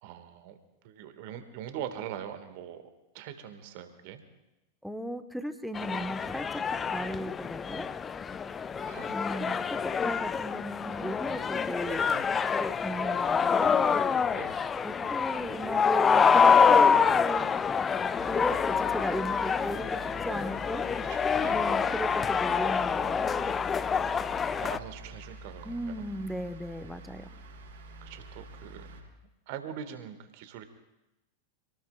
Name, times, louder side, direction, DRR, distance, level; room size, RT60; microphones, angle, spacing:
voice 1, 0.0-0.6 0.8-2.8 3.1-4.2 8.8-9.6 10.7-10.8 11.8-12.2 14.3-14.6 21.0-21.6 24.5-26.0 28.0-29.0 29.5-30.6, right 9 dB, 50° right, 9 dB, 1.6 m, -42 dB
voice 2, 4.8-7.9 9.1-9.6 10.0-12.1 12.5-13.8 14.8-17.5 18.3-20.8 21.5-23.5 25.6-27.3, equal, ahead, 8 dB, 1.0 m, -36 dB
sound 1, 5.7-24.8, left 6 dB, 20° left, 0.4 m, -26 dB
sound 2, 18.1-29.0, right 1 dB, 65° right, 5.0 m, -46 dB
27.0 x 18.5 x 2.3 m, 0.96 s
figure-of-eight pair, 90°, 0 cm